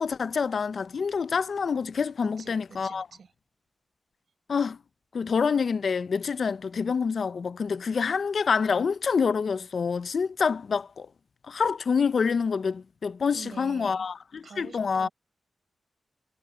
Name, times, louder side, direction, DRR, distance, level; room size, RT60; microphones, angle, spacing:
voice 1, 0.0-3.1 4.5-4.8 5.1-11.1 11.5-15.1, left 5 dB, 65° left, 0.5 m, -27 dB
voice 2, 2.2-3.3 13.3-14.1 14.4-15.1, right 6 dB, 70° right, 4.8 m, -46 dB
wide cardioid pair, 110°, 0 cm